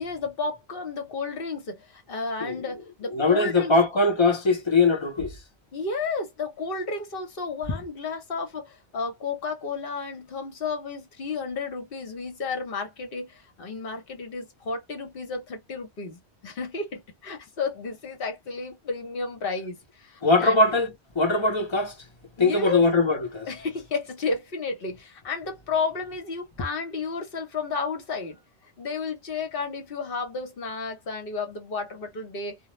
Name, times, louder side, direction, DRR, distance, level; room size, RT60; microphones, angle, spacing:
voice 1, 0.0-3.8 5.7-20.6 22.4-22.8 23.5-28.4 28.8-32.6, left 4 dB, 60° left, 1.0 m, -32 dB
voice 2, 3.1-5.4 7.7-7.8 20.2-22.0 22.4-23.5, left 3 dB, 35° left, 0.6 m, -21 dB
2.2 x 2.1 x 3.0 m
omnidirectional pair, 1.1 m